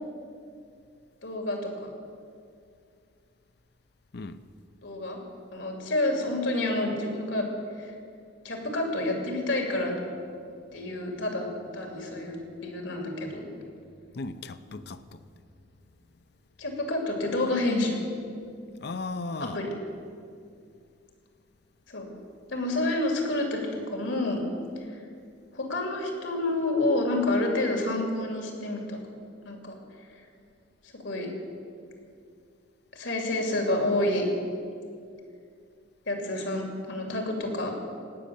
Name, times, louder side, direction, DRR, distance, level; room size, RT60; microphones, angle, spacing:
voice 1, 1.2-1.9 4.8-5.2 5.5-7.5 7.8-7.9 8.4-10.0 10.7-13.5 16.6-18.0 19.4-19.7 21.9-22.1 22.5-24.4 24.9-25.0 25.5-29.0 29.4-29.8 30.1-30.2 31.0-31.3 32.9-34.3 36.1-37.7, left 2 dB, 75° left, 2.6 m, -29 dB
voice 2, 4.1-4.4 14.1-15.3 18.8-19.6, left 3 dB, 60° left, 0.6 m, -36 dB
17.5 x 6.4 x 8.6 m
head